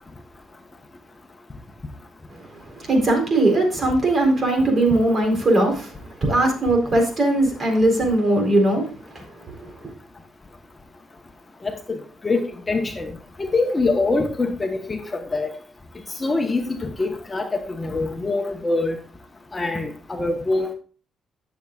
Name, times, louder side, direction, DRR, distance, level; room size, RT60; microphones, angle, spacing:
voice 1, 2.3-9.9, right 1 dB, 40° right, 4.1 m, -20 dB
voice 2, 11.6-13.1 13.4-15.5 16.2-19.0 19.5-20.7, left 3 dB, 25° left, 1.3 m, -24 dB
14.0 x 7.2 x 2.5 m
cardioid pair, 90°, 0 cm